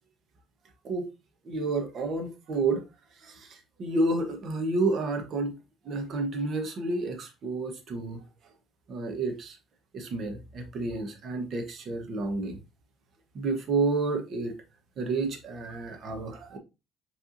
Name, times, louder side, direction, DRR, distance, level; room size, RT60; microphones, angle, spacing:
voice 1, 1.4-2.8 3.2-5.5 5.8-8.2 8.9-9.6 9.9-12.6 13.3-14.5 15.0-16.6, right 3 dB, 55° right, 1.2 m, -30 dB
5.5 x 3.4 x 2.7 m
supercardioid pair, 90°, 0 cm